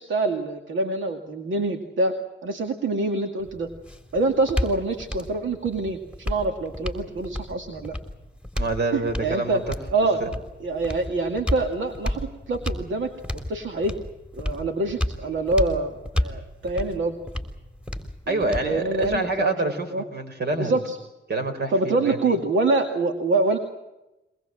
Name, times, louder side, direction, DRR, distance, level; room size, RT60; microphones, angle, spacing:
voice 1, 0.0-3.7 4.1-8.0 8.9-9.6 9.9-10.2 10.6-14.0 14.3-17.2 18.3-20.0 20.6-21.0 21.7-23.6, right 2 dB, 80° right, 4 dB, 2.3 m, -26 dB
sound 1, 3.4-19.4, left 1 dB, 5° right, 3.6 m, -32 dB
voice 2, 8.6-9.7 10.2-10.3 18.3-20.7 21.3-22.4, right 2 dB, 55° right, 7 dB, 4.5 m, -27 dB
23.5 x 20.5 x 7.7 m, 0.96 s
cardioid pair, 85°, 20 cm